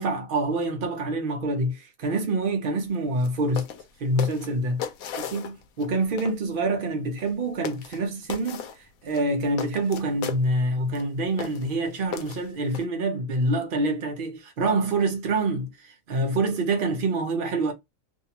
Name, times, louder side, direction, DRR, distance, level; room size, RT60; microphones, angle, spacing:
voice 1, 0.0-3.7 4.0-4.8 5.2-8.6 9.0-17.7, right 2 dB, 85° right, 0.4 m, -26 dB
sound 1, 3.2-3.3 3.6-3.8 4.2-5.9 6.2-6.4 7.2-7.3 7.6-8.0 8.3-8.8 9.1-10.4 10.9-11.0 11.4-11.7 12.1-12.9, left 8 dB, 75° left, 1.0 m, -35 dB
2.6 x 2.2 x 2.7 m
omnidirectional pair, 1.6 m